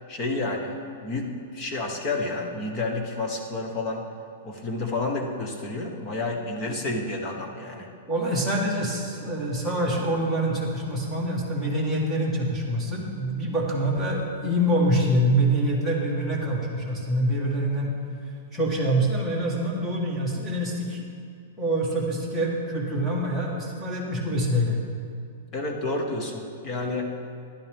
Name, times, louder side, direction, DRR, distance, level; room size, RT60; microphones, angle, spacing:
voice 1, 0.1-0.7 1.0-4.1 4.4-7.9 25.5-27.1, left 2 dB, 20° left, 2 dB, 1.0 m, -30 dB
voice 2, 8.1-17.9 18.5-21.0 21.6-24.8, right 1 dB, ahead, -5 dB, 1.3 m, -25 dB
12.0 x 11.5 x 3.5 m, 2.4 s
supercardioid pair, 180°, 0 cm